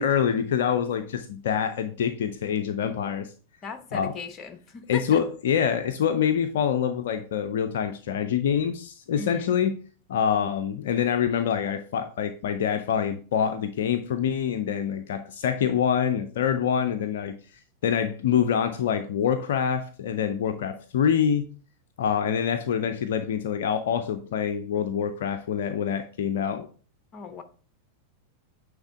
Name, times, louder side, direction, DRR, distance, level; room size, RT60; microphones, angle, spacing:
voice 1, 0.0-3.3 3.9-4.1 4.9-9.8 10.1-17.4 17.8-21.5 22.0-26.7, left 8 dB, 60° left, 0.4 m, -25 dB
voice 2, 3.6-5.2 9.2-9.5 27.1-27.4, left 6 dB, 30° left, 0.8 m, -37 dB
8.8 x 3.5 x 3.5 m
figure-of-eight pair, 90°, 0 cm